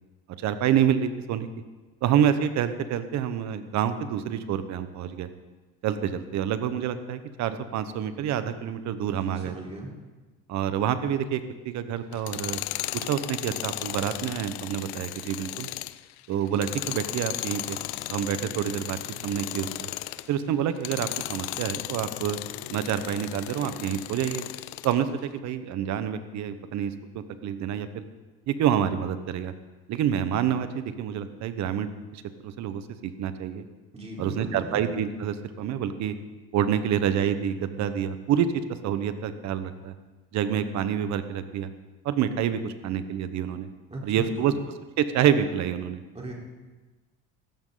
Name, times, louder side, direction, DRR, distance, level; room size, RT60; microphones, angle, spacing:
voice 1, 0.4-1.5 2.0-5.3 5.8-9.5 10.5-12.6 13.1-15.7 16.3-17.8 18.1-19.0 19.2-19.9 20.3-22.4 22.7-24.4 24.8-28.0 28.5-29.5 29.9-33.6 34.2-36.1 36.5-38.5 38.8-39.9 40.3-41.7 42.0-43.7 44.0-44.5 45.0-46.0, right 9 dB, 60° right, 11 dB, 1.3 m, -27 dB
voice 2, 9.1-9.9 33.9-34.9 43.9-44.6 46.1-46.3, right 2 dB, 20° right, -2 dB, 4.3 m, -38 dB
Tools, 12.1-20.3 20.7-25.0, left 18 dB, 90° left, 0.6 m, -35 dB
16.5 x 14.5 x 4.0 m, 1.2 s
supercardioid pair, 100°, 32 cm